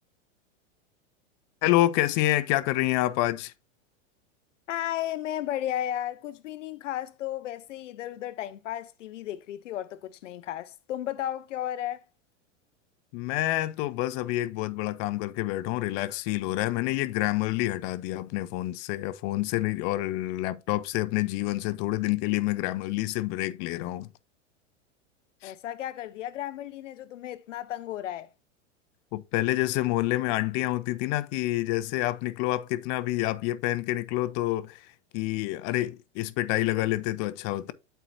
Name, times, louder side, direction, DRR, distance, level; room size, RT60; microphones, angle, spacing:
voice 1, 1.6-3.5 13.1-24.1 25.4-25.5 29.1-37.7, left 17 dB, 45° left, 0.7 m, -28 dB
voice 2, 4.7-12.0 25.4-28.3, left 12 dB, 85° left, 0.6 m, -34 dB
12.5 x 4.6 x 2.6 m
hypercardioid pair, 115°, 36 cm